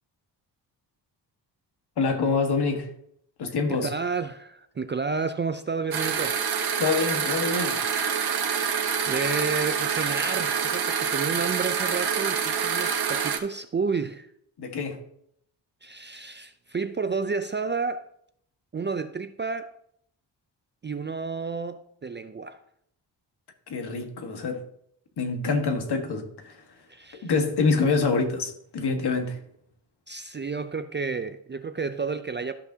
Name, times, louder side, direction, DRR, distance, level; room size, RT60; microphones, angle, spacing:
voice 1, 2.0-2.9 3.4-3.9 6.8-7.8 14.6-15.0 23.7-24.6 25.2-26.6 27.2-29.4, left 4 dB, 60° left, 1.6 m, -26 dB
voice 2, 3.7-6.4 9.1-14.3 15.8-18.1 18.7-19.7 20.8-22.6 26.9-27.3 30.1-32.5, right 4 dB, 25° right, 0.4 m, -31 dB
sound 1, 5.9-13.4, right 7 dB, 60° right, 1.3 m, -26 dB
13.5 x 5.9 x 2.8 m
cardioid pair, 75°, 44 cm